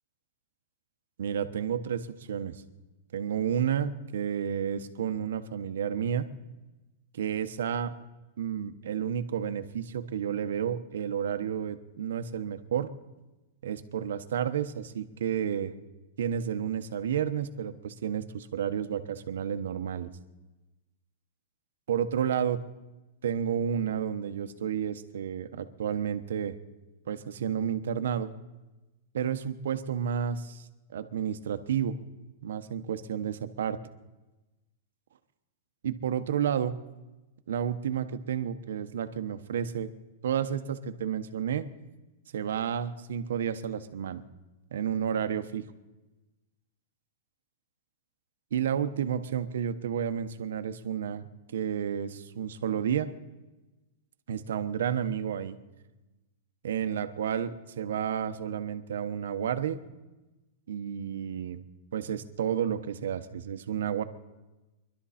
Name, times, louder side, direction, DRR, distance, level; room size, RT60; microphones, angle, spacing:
voice 1, 1.2-2.6 3.1-6.3 7.1-7.9 8.4-12.9 13.6-15.8 16.2-20.1 21.9-22.6 23.2-26.6 27.1-28.3 29.1-32.0 32.4-33.8 35.8-36.7 37.5-39.9 40.2-41.7 42.3-44.2 44.7-45.6 48.5-53.1 54.3-55.6 56.6-59.8 60.7-61.6 61.9-64.0, right 8 dB, 80° right, 10 dB, 1.1 m, -31 dB
24.0 x 12.0 x 4.3 m, 1.1 s
supercardioid pair, 175°, 0 cm